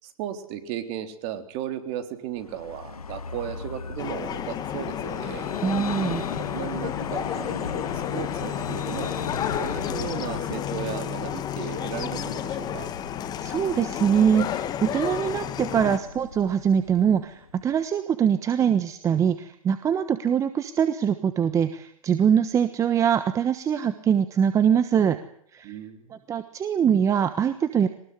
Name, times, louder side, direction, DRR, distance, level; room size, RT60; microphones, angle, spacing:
voice 1, 0.0-5.5 6.4-9.1 9.5-12.9 25.6-26.2, right 10 dB, 35° right, 8 dB, 3.8 m, -35 dB
Vehicle, 2.4-17.8, left 6 dB, 90° left, 1.8 m, -38 dB
sound 1, 4.0-16.0, left 10 dB, 20° left, 1.8 m, -31 dB
voice 2, 5.6-6.3 13.4-25.2 25.5-25.7 26.3-27.9, right 8 dB, 15° right, 11 dB, 1.2 m, -23 dB
23.0 x 19.5 x 9.7 m, 0.67 s
hypercardioid pair, 130°, 19 cm